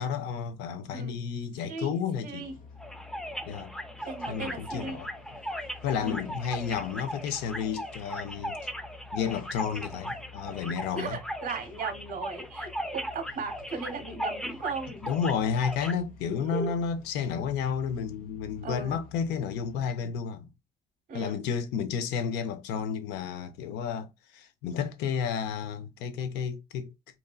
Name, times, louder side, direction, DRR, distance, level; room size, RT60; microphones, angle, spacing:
voice 1, 0.0-2.5 3.5-3.7 4.3-5.1 5.8-8.6 9.1-11.2 15.0-20.5 21.1-26.9, left 7 dB, 90° left, 0.5 m, -31 dB
sound 1, 2.4-19.9, left 4 dB, 55° left, 0.8 m, -51 dB
sound 2, 2.8-15.9, equal, 5° left, 0.3 m, -38 dB
voice 2, 4.0-5.0 6.0-6.2 11.0-15.0 16.3-16.7 18.6-19.0 21.1-21.4, right 4 dB, 55° right, 0.8 m, -36 dB
2.9 x 2.6 x 2.2 m
cardioid pair, 110°, 17 cm